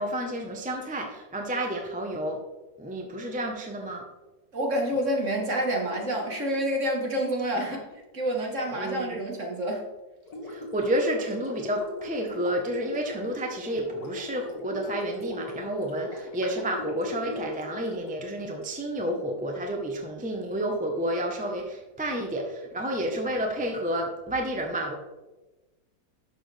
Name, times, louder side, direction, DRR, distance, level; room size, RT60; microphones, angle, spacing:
voice 1, 0.0-2.4 2.8-4.0 8.7-9.2 10.5-24.9, right 1 dB, 5° right, 2 dB, 0.9 m, -30 dB
voice 2, 4.5-7.8 8.1-9.8, equal, 45° right, 0 dB, 1.9 m, -28 dB
Gurgling, 10.2-18.6, left 2 dB, 60° left, 2.6 m, -39 dB
11.5 x 6.8 x 3.5 m, 1.1 s
omnidirectional pair, 1.8 m